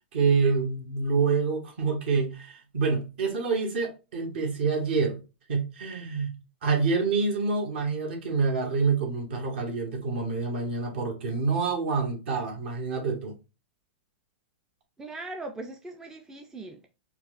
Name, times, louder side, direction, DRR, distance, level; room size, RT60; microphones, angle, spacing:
voice 1, 0.1-5.2 5.5-13.3, right 4 dB, 60° right, 1.6 m, -27 dB
voice 2, 15.0-16.9, right 2 dB, 10° right, 0.4 m, -40 dB
4.6 x 2.4 x 2.5 m
hypercardioid pair, 140°, 7 cm